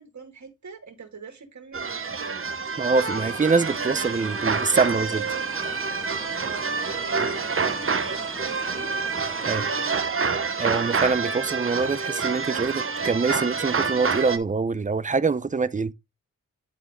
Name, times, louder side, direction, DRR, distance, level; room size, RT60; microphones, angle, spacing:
voice 1, 0.0-2.7 6.4-9.2 9.4-10.4, right 5 dB, 55° right, 2.3 m, -44 dB
sound 1, 1.7-14.4, right 5 dB, 40° right, 0.9 m, -27 dB
voice 2, 2.8-5.3 9.5-9.6 10.6-15.9, right 4 dB, 25° right, 0.6 m, -24 dB
sound 2, 3.1-9.6, equal, 10° left, 1.6 m, -42 dB
10.5 x 3.6 x 3.7 m
cardioid pair, 45°, 33 cm